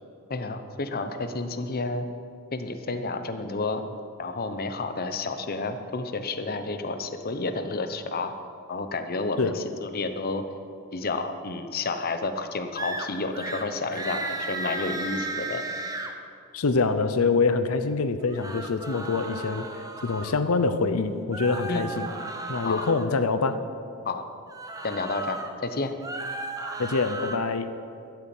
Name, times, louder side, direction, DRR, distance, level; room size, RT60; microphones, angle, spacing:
voice 1, 0.3-2.1 2.5-3.8 4.2-8.3 8.7-10.4 10.9-15.6 21.7-21.9 22.6-23.2 24.0-24.3 24.8-25.9, left 3 dB, 45° left, 8 dB, 0.9 m, -30 dB
sound 1, 12.8-13.1 13.3-13.6 13.9-16.1 18.2-20.4 21.3-23.1 24.5-25.5 25.9-27.4, right 2 dB, 15° right, 0.9 m, -35 dB
voice 2, 16.5-19.6 20.0-22.1 22.5-23.6 26.8-27.7, left 4 dB, 75° left, 10 dB, 0.7 m, -25 dB
12.5 x 8.2 x 7.7 m, 2.5 s
head